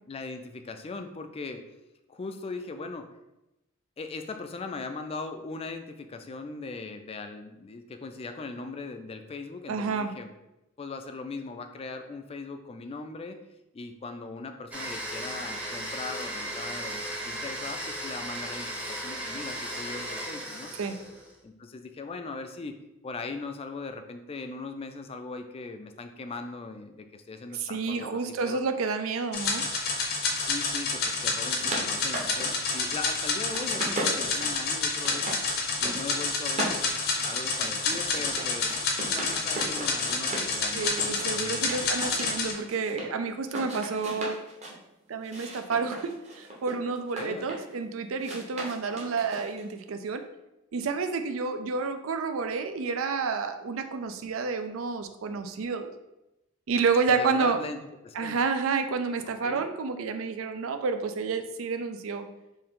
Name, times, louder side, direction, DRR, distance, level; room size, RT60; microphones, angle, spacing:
voice 1, 0.1-1.7 2.1-3.1 4.0-10.3 10.8-13.4 13.7-20.7 21.4-28.6 30.3-35.4 35.8-38.8 39.1-41.7 42.0-42.1 47.2-47.5 57.1-58.4 59.4-59.7, left 3 dB, 30° left, 7 dB, 0.3 m, -39 dB
voice 2, 9.7-10.1 20.8-21.0 27.6-29.6 40.7-44.4 45.1-50.3 50.7-55.9 56.7-57.6 58.2-62.3, right 4 dB, 85° right, 8 dB, 0.4 m, -29 dB
Domestic sounds home sounds, 14.7-21.4, right 1 dB, 5° right, 0.7 m, -36 dB
sound 1, 29.3-42.5, left 4 dB, 50° left, 0.7 m, -29 dB
sound 2, 31.3-33.2 33.5-35.4 35.7-36.2 36.5-40.5 40.8-43.1 43.4-44.8 45.2-47.7 48.2-49.7, right 1 dB, 35° right, 0.9 m, -37 dB
4.4 x 2.7 x 3.7 m, 0.93 s
head